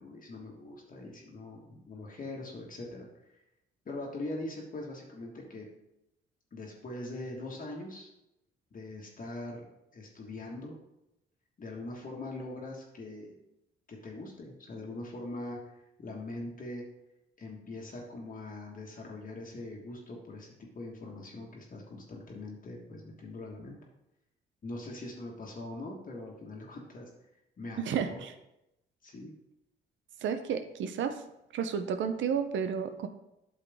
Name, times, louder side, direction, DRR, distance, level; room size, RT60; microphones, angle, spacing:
voice 1, 0.0-3.1 3.8-5.7 6.5-8.1 8.7-9.6 9.9-10.8 11.6-13.3 13.9-16.8 17.4-23.8 24.6-27.1 27.6-28.2 29.0-29.3, left 2 dB, 45° left, -2 dB, 1.6 m, -42 dB
voice 2, 27.8-28.3 30.2-31.2 31.5-33.1, right 7 dB, 70° right, 8 dB, 0.8 m, -31 dB
8.8 x 6.3 x 3.6 m, 0.87 s
cardioid pair, 90°, 20 cm